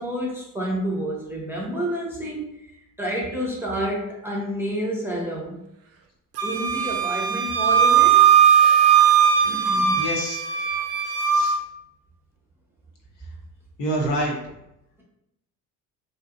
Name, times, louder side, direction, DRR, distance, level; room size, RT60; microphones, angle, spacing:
voice 1, 0.0-2.5 3.0-5.6 6.4-8.2 9.4-10.0, equal, 5° right, -4 dB, 0.8 m, -29 dB
Wind instrument woodwind instrument, 6.4-11.6, right 8 dB, 35° right, 0.4 m, -18 dB
voice 2, 10.0-10.4 11.3-11.6 13.8-14.4, right 1 dB, 60° left, -2 dB, 1.0 m, -26 dB
2.7 x 2.6 x 2.4 m, 0.84 s
hypercardioid pair, 60°, 47 cm